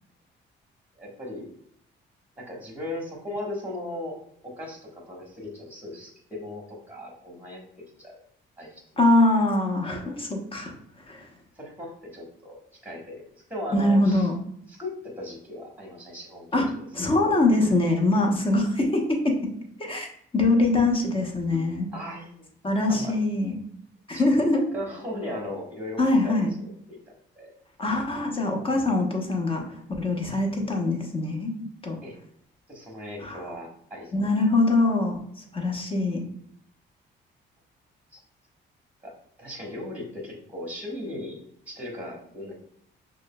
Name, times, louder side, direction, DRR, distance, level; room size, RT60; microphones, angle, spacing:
voice 1, 1.0-1.4 2.4-4.2 4.4-7.7 8.0-8.2 8.6-9.1 11.5-13.2 13.5-14.3 14.7-16.6 21.9-22.4 22.9-23.1 24.1-24.2 24.7-26.5 26.9-27.0 27.3-27.5 32.0-32.2 32.7-34.2 38.1-38.2 39.0-39.1 39.4-42.5, left 1 dB, 10° right, -1 dB, 1.3 m, -37 dB
voice 2, 9.0-10.7 11.1-11.3 13.7-14.4 16.5-19.5 19.8-20.1 20.3-21.9 22.6-23.6 24.1-24.7 26.0-26.5 27.8-31.5 31.8-32.0 33.2-33.4 34.1-35.2 35.5-36.2, left 2 dB, 25° left, 2 dB, 0.9 m, -23 dB
6.0 x 2.3 x 2.2 m, 0.67 s
cardioid pair, 90°, 20 cm